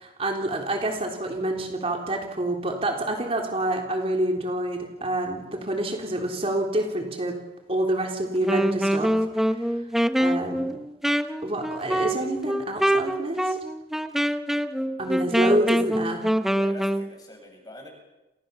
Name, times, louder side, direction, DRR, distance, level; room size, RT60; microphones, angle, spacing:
voice 1, 0.0-7.4 7.7-9.4 10.2-10.8 11.4-13.6 15.0-16.2, right 1 dB, 35° right, 2 dB, 3.5 m, -27 dB
Wind instrument woodwind instrument, 8.4-17.1, equal, ahead, 1.1 m, -25 dB
voice 2, 14.7-15.9 16.5-17.9, left 1 dB, 20° left, 3 dB, 7.7 m, -46 dB
30.0 x 26.0 x 7.0 m, 1.0 s
head